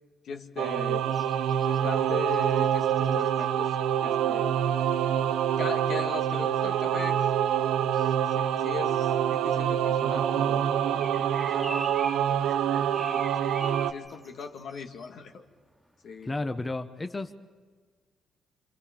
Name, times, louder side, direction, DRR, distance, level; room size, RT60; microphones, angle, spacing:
voice 1, 0.2-1.1 1.5-3.8 4.0-4.5 5.6-10.6 10.9-13.5 13.9-15.4 16.0-16.3, left 5 dB, 65° left, 5 dB, 1.8 m, -40 dB
Singing / Musical instrument, 0.6-13.9, right 9 dB, 85° right, 0.7 m, -26 dB
sound 1, 1.1-15.9 16.3-16.4, equal, ahead, 1.9 m, -45 dB
voice 2, 16.2-17.3, left 2 dB, 20° left, 8 dB, 1.0 m, -32 dB
27.0 x 26.5 x 5.2 m, 1.5 s
cardioid pair, 90°, 0 cm